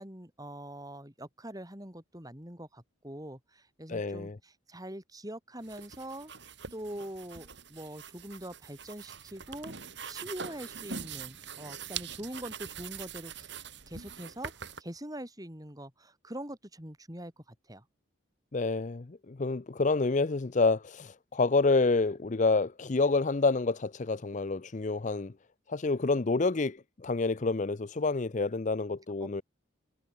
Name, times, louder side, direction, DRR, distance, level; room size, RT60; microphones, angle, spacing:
voice 1, 0.0-6.3 6.7-9.7 10.1-13.5 13.9-14.5 14.8-17.8, right 1 dB, 20° right, 6.4 m, -43 dB
voice 2, 3.9-4.4 18.5-25.3 25.7-29.4, left 3 dB, 40° left, 0.5 m, -28 dB
sound 1, 5.6-14.8, right 6 dB, 55° right, 4.7 m, -43 dB
head